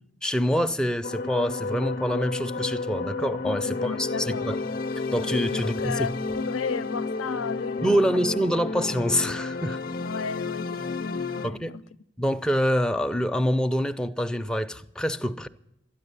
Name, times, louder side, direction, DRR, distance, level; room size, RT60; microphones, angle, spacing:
voice 1, 0.2-4.6 5.1-6.0 7.8-9.8 11.4-11.7 12.2-15.5, equal, 5° left, 0.5 m, -26 dB
sound 1, 1.0-11.5, left 3 dB, 45° left, 0.6 m, -31 dB
voice 2, 3.6-4.5 5.5-8.2 10.0-11.8, left 5 dB, 90° left, 0.5 m, -34 dB
13.0 x 10.0 x 9.5 m
head